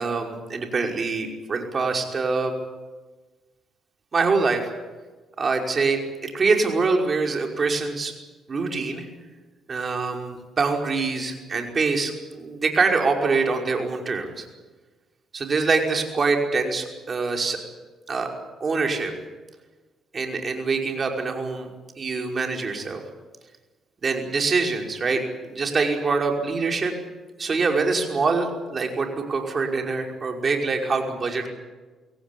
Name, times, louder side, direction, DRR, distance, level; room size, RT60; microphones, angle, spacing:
voice 1, 0.0-2.5 4.1-4.7 5.4-8.1 8.5-9.1 9.7-14.5 15.3-17.6 18.1-18.3 18.6-19.1 20.1-21.7 22.0-23.0 24.0-25.2 25.5-26.9 27.4-31.5, right 4 dB, 40° right, 3 dB, 5.4 m, -24 dB
24.5 x 17.0 x 10.0 m, 1.3 s
cardioid pair, 90°, 0 cm